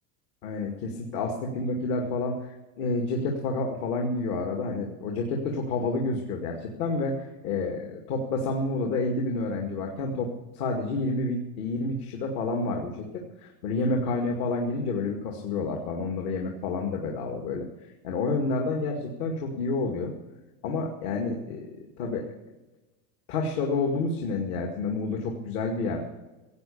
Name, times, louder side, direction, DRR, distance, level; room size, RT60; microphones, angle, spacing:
voice 1, 0.4-17.7 18.0-20.1 20.6-22.3 23.3-26.0, left 3 dB, 65° left, 2 dB, 2.3 m, -29 dB
16.5 x 8.8 x 7.0 m, 1.1 s
supercardioid pair, 165°, 49 cm